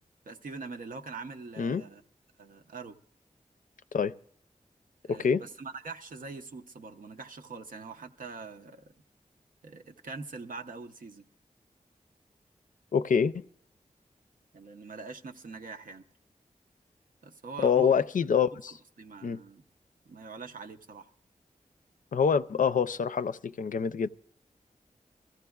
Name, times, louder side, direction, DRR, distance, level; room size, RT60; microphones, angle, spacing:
voice 1, 0.2-2.0 2.4-3.0 5.0-8.9 9.6-11.3 14.5-16.0 17.2-18.0 18.7-19.6 20.0-21.1, right 4 dB, 80° right, 0.7 m, -43 dB
voice 2, 5.1-5.4 12.9-13.4 17.6-18.7 19.2-19.4 22.1-24.1, left 6 dB, 70° left, 0.4 m, -26 dB
23.0 x 14.5 x 2.3 m
wide cardioid pair, 65°, 14 cm